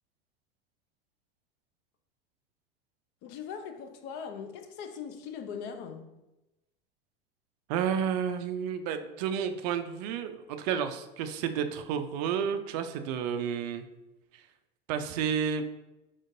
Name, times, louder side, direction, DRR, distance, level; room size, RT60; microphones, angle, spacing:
voice 1, 3.2-6.1, left 7 dB, 35° left, 0.5 m, -40 dB
voice 2, 7.7-13.8 14.9-15.6, right 7 dB, 45° right, 0.4 m, -31 dB
5.0 x 3.6 x 2.6 m
figure-of-eight pair, 80°, 30 cm